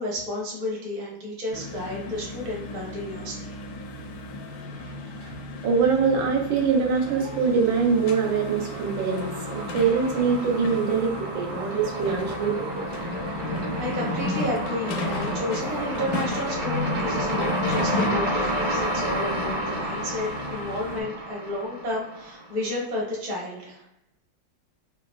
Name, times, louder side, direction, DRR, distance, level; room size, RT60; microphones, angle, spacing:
voice 1, 0.0-3.6 13.0-13.3 13.8-23.8, left 1 dB, 40° right, -4 dB, 0.6 m, -32 dB
sound 1, 1.5-21.0, left 2 dB, 75° left, 1.0 m, -34 dB
voice 2, 5.6-12.9, right 5 dB, 85° right, -1 dB, 1.5 m, -24 dB
sound 2, 6.4-7.1 7.4-22.6, equal, 70° right, 1.5 m, -31 dB
3.8 x 2.2 x 2.3 m, 0.85 s
omnidirectional pair, 2.1 m